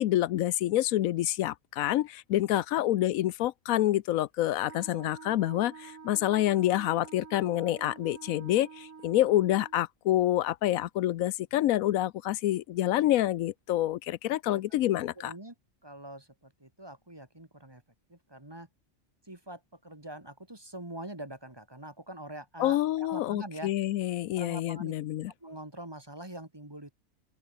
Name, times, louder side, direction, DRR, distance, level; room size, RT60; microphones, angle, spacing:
voice 1, 0.0-15.3 22.6-25.3, left 14 dB, 85° left, 1.1 m, -27 dB
Wind instrument woodwind instrument, 4.6-9.8, right 6 dB, 75° right, 2.1 m, -48 dB
voice 2, 15.2-15.5 15.8-17.8 18.1-18.7 19.2-23.7 24.3-24.9 25.4-26.9, right 1 dB, 15° right, 2.2 m, -44 dB
open air
omnidirectional pair, 1.4 m